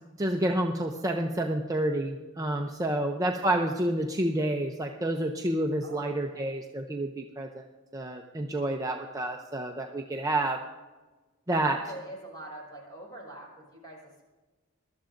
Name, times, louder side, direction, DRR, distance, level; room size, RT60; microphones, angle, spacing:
voice 1, 0.2-7.6 7.9-10.6 11.5-11.8, right 1 dB, 15° right, 2 dB, 0.6 m, -29 dB
voice 2, 2.6-3.2 5.8-6.5 11.6-14.0, right 1 dB, 20° left, -3 dB, 5.1 m, -45 dB
21.0 x 12.5 x 2.6 m, 1.3 s
head